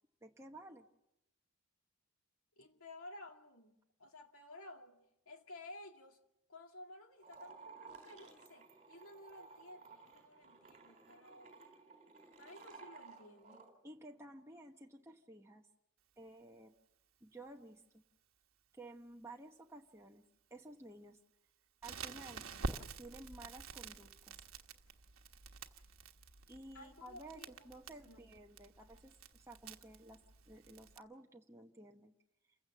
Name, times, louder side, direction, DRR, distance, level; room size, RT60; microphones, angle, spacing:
voice 1, 0.2-0.9 13.8-15.7 16.2-16.7 17.2-18.0 18.7-20.2 20.5-21.2 21.8-22.5 23.0-24.5 26.5-30.2 30.5-32.1, right 2 dB, 15° right, 1.0 m, -54 dB
voice 2, 2.6-6.2 6.5-11.6 12.4-13.7 26.7-28.3, left 2 dB, 70° left, 2.4 m, -55 dB
sound 1, 7.2-13.7, right 4 dB, 30° right, 3.8 m, -56 dB
Crackle, 21.8-31.0, right 3 dB, 65° right, 1.3 m, -48 dB
28.5 x 16.0 x 7.5 m
head